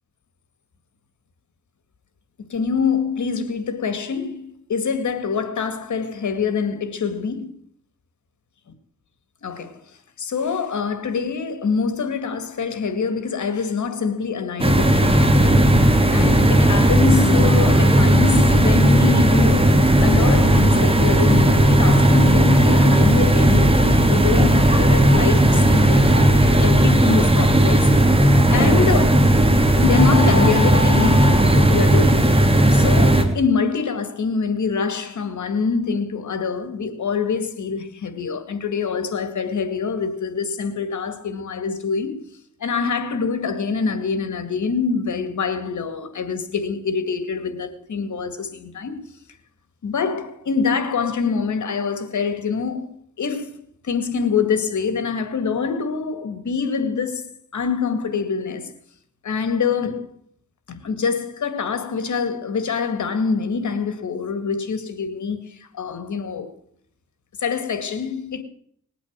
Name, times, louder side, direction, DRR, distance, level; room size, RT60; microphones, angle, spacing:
voice 1, 2.4-7.5 9.4-9.8 10.2-15.6 16.1-27.9 28.5-29.3 29.8-42.2 42.6-49.0 49.8-53.6 53.8-58.7 59.2-60.1 60.7-66.5 67.4-68.4, left 5 dB, 85° left, 2.1 m, -25 dB
sound 1, 14.6-33.2, right 1 dB, 20° right, 2.8 m, -15 dB
20.0 x 8.4 x 7.5 m
cardioid pair, 65°, 29 cm